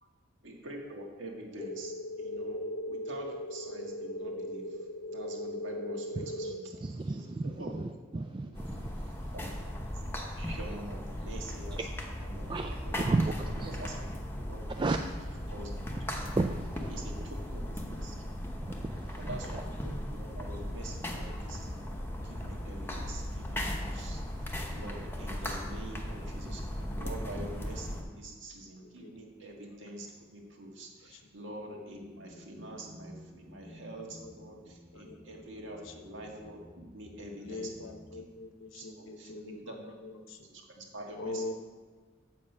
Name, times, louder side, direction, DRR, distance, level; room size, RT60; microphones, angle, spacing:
voice 1, 0.4-4.8 5.1-7.8 8.2-8.6 9.3-11.8 12.1-13.0 13.7-14.0 14.4-14.6 15.5-15.7 16.0-16.2 16.9-18.2 19.2-21.8 22.2-38.2 38.7-39.9 40.4-41.5, right 1 dB, 65° right, 0 dB, 1.8 m, -46 dB
sound 1, 1.6-6.6, left 1 dB, 40° left, 0.7 m, -38 dB
voice 2, 6.2-6.5 6.8-9.3 12.5-13.9 14.7-15.0 16.3-17.1 18.6-19.3, right 3 dB, 25° right, 6 dB, 0.3 m, -34 dB
sound 2, 8.5-28.0, equal, 10° left, 0.9 m, -37 dB
voice 3, 28.8-29.4 31.1-31.2 33.6-34.3 34.9-35.2 35.7-36.1 37.4-40.5 41.2-41.5, left 2 dB, 80° left, 6 dB, 0.9 m, -43 dB
sound 3, 31.9-38.2, equal, 45° right, 2.0 m, -54 dB
7.7 x 7.5 x 5.4 m, 1.5 s
head